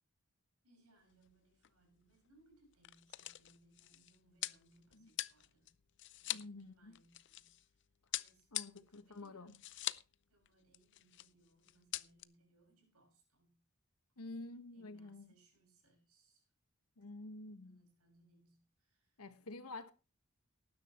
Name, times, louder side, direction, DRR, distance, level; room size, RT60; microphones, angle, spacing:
voice 1, 0.6-5.8 6.2-7.8 8.1-9.7 10.3-13.6 14.7-16.5 17.4-19.2, right 2 dB, 90° right, 6.7 m, -71 dB
sound 1, 1.1-1.4 1.6-1.7 2.5-7.7 8.1-10.1 10.4-10.5 10.7-11.3 11.6-12.2, left 15 dB, 55° left, 0.5 m, -43 dB
voice 2, 6.3-7.0 8.5-9.5 14.2-15.3 17.0-17.8 19.2-19.9, left 2 dB, 90° left, 1.5 m, -49 dB
18.5 x 10.5 x 3.1 m
head